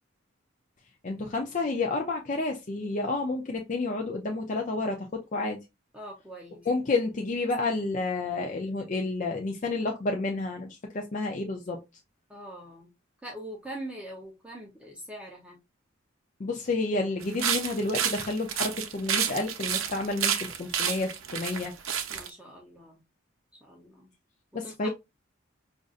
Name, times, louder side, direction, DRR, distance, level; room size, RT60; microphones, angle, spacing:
voice 1, 1.0-5.6 6.6-11.8 16.4-21.7 24.5-24.9, left 3 dB, 35° left, 0.5 m, -30 dB
voice 2, 5.9-6.6 12.3-12.9 13.2-15.6 22.1-23.0 23.6-24.1 24.6-24.9, right 1 dB, 5° right, 0.7 m, -42 dB
sound 1, 17.2-22.3, right 8 dB, 75° right, 0.6 m, -30 dB
5.1 x 2.5 x 2.4 m
head